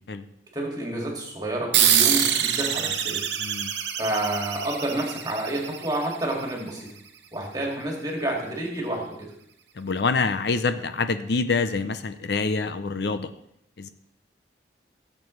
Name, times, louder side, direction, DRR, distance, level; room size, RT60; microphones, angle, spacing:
voice 1, 0.5-3.2 4.0-6.9 7.3-9.3, right 1 dB, 20° right, -1 dB, 2.2 m, -29 dB
sound 1, 1.7-6.7, right 9 dB, 75° right, 0.9 m, -25 dB
voice 2, 3.4-3.7 9.8-13.3 13.8-13.9, left 4 dB, 65° left, 11 dB, 0.5 m, -26 dB
16.0 x 7.5 x 3.2 m, 0.75 s
head